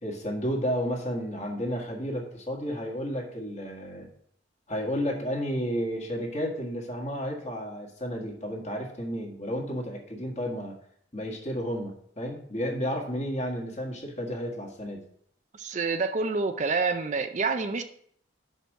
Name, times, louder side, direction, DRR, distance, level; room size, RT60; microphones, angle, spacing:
voice 1, 0.0-4.1 4.7-10.8 11.1-15.0, equal, 35° left, 0 dB, 1.7 m, -32 dB
voice 2, 15.5-17.8, right 4 dB, 40° right, 8 dB, 0.4 m, -27 dB
6.1 x 5.4 x 6.3 m, 0.64 s
head